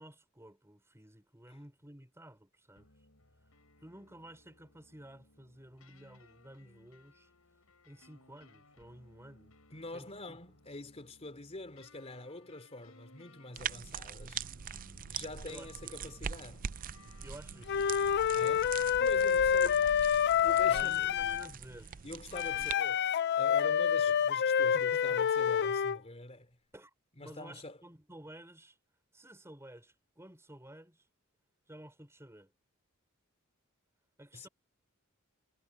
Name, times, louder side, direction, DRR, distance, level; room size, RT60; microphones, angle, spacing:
voice 1, 0.0-2.9 3.8-7.3 7.8-9.5 9.9-10.4 15.4-16.1 17.2-17.9 20.5-21.9 22.6-22.7 24.0-24.3 24.6-25.2 26.7-26.9 27.2-28.8 29.1-31.1 31.7-32.5 34.2-34.5, right 1 dB, 15° right, 4.9 m, -53 dB
sound 1, 2.8-19.7, left 2 dB, 80° left, 6.6 m, -61 dB
voice 2, 9.7-14.4 15.1-16.7 18.3-20.0 20.4-21.2 22.0-23.0 23.4-26.6 27.2-27.8 34.3-34.5, left 2 dB, 30° left, 3.2 m, -45 dB
sound 2, 13.5-22.7, right 7 dB, 40° right, 0.5 m, -43 dB
Wind instrument woodwind instrument, 17.7-21.5 22.3-26.0, left 8 dB, 50° left, 0.4 m, -28 dB
head